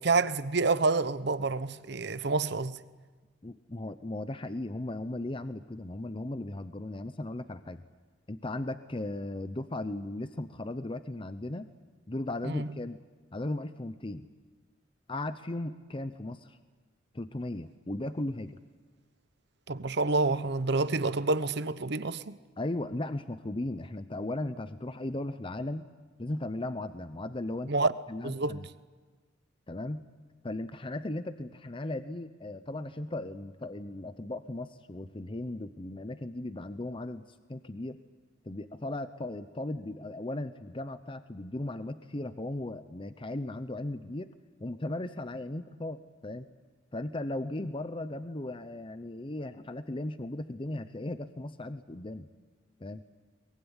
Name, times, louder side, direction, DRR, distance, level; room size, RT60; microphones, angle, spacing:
voice 1, 0.0-2.8 12.4-12.7 19.7-22.4 27.7-27.9 28.2-28.7, right 3 dB, 60° right, 1.0 m, -28 dB
voice 2, 3.4-7.8 8.3-11.7 12.1-13.0 13.3-14.3 15.1-16.6 17.1-18.6 22.6-25.8 26.2-27.7 28.1-28.7 29.7-30.0 30.4-37.2 37.5-38.0 38.4-44.3 44.6-46.5 46.9-52.3 52.8-53.0, left 1 dB, 25° left, 0.8 m, -37 dB
23.0 x 21.5 x 9.9 m
head